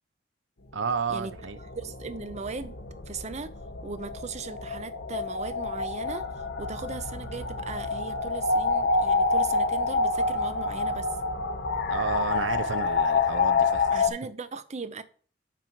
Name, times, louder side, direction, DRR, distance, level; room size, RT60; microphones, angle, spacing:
voice 1, 0.7-1.6 11.9-14.0, right 5 dB, 85° right, 0.6 m, -31 dB
sound 1, 0.9-14.1, left 3 dB, 60° left, 0.9 m, -28 dB
voice 2, 1.7-2.8 3.1-3.5 3.8-11.1 13.9-15.0, right 4 dB, 40° right, 0.6 m, -38 dB
9.1 x 3.1 x 5.8 m
head